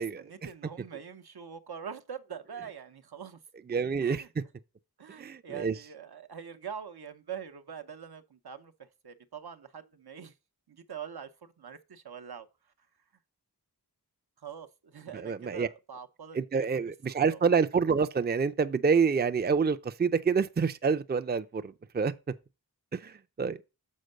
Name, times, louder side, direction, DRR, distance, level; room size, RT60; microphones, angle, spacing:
voice 1, 0.0-3.4 4.0-4.3 5.0-10.3 10.7-12.5 14.4-16.9 17.2-17.4, right 7 dB, 80° right, 0.8 m, -44 dB
voice 2, 3.7-4.2 5.2-5.7 15.1-15.7 16.3-22.1 22.9-23.6, right 5 dB, 25° right, 0.4 m, -27 dB
6.5 x 4.4 x 6.5 m
wide cardioid pair, 45°, 38 cm